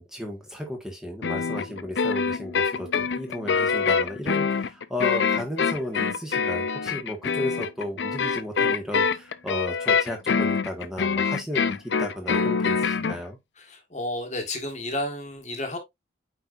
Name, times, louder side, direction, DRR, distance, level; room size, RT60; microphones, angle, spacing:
voice 1, 0.0-13.4, left 1 dB, 5° right, 1.6 m, -34 dB
sound 1, 1.2-13.2, left 5 dB, 65° left, 0.5 m, -25 dB
voice 2, 13.6-15.8, left 1 dB, 35° left, 1.6 m, -31 dB
8.8 x 4.5 x 2.5 m
head